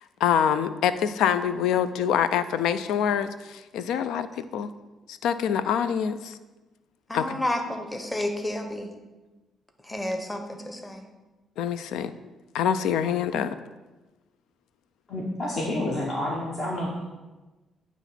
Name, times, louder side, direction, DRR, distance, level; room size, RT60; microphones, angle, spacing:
voice 1, 0.2-4.3 4.5-4.7 5.1-6.4 7.1-7.3 11.6-12.1 12.5-13.6, left 8 dB, 85° left, 13 dB, 0.3 m, -25 dB
voice 2, 7.1-8.9 9.8-11.0, left 1 dB, 15° left, 5 dB, 0.9 m, -31 dB
voice 3, 15.1-17.0, left 1 dB, 50° left, -4 dB, 1.2 m, -29 dB
9.0 x 3.0 x 5.7 m, 1.2 s
cardioid pair, 90°, 0 cm